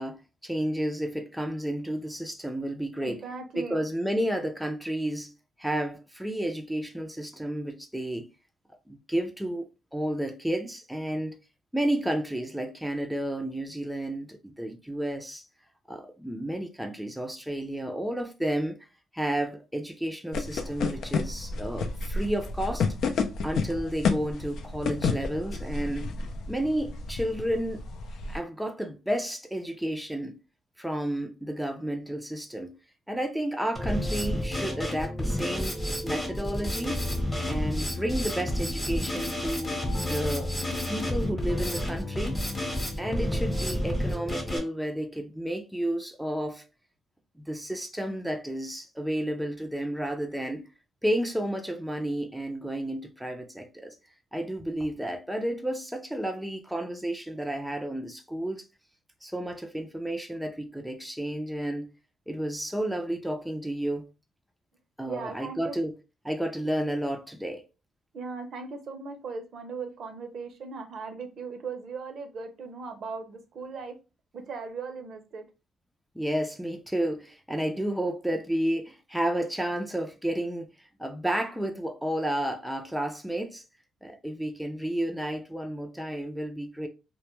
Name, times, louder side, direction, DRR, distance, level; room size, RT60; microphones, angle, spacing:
voice 1, 0.0-3.2 3.6-5.3 5.6-8.3 8.9-9.7 9.9-11.4 11.7-15.4 15.9-18.8 19.1-22.9 23.4-26.1 26.5-27.8 28.3-30.4 30.8-32.7 33.1-37.0 37.5-40.5 40.9-42.5 43.0-46.6 47.4-50.7 51.0-53.9 54.3-58.6 59.2-61.9 62.3-64.1 65.0-66.0 66.2-67.6 76.2-83.6 84.0-86.9, right 1 dB, ahead, 0.4 m, -31 dB
voice 2, 3.0-3.8 61.3-61.4 65.1-65.7 68.1-73.9 74.3-75.4, right 4 dB, 60° right, 0.6 m, -38 dB
sound 1, 20.3-28.4, left 4 dB, 70° left, 0.4 m, -31 dB
Drum kit, 33.8-44.6, left 1 dB, 20° left, 0.9 m, -30 dB
2.2 x 2.0 x 3.0 m
cardioid pair, 90°, 0 cm